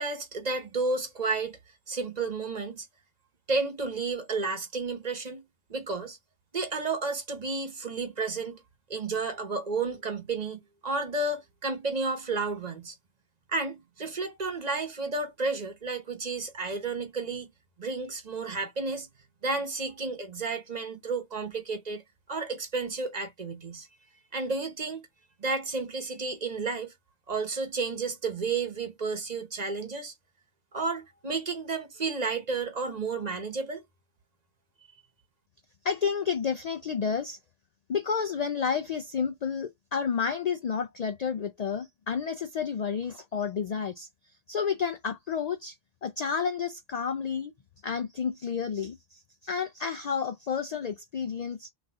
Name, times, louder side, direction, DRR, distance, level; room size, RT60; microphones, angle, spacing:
voice 1, 0.0-1.6 1.9-2.9 3.5-5.4 5.7-6.2 6.5-8.6 8.9-12.9 13.5-17.5 17.8-19.1 19.4-22.0 22.3-23.9 24.3-25.0 25.4-26.9 27.3-30.1 30.7-33.8, right 3 dB, 40° right, 0.9 m, -32 dB
voice 2, 35.8-37.4 37.9-44.1 44.5-45.8 46.0-47.5 47.8-51.7, left 6 dB, 70° left, 0.4 m, -30 dB
4.0 x 2.6 x 4.3 m
omnidirectional pair, 1.2 m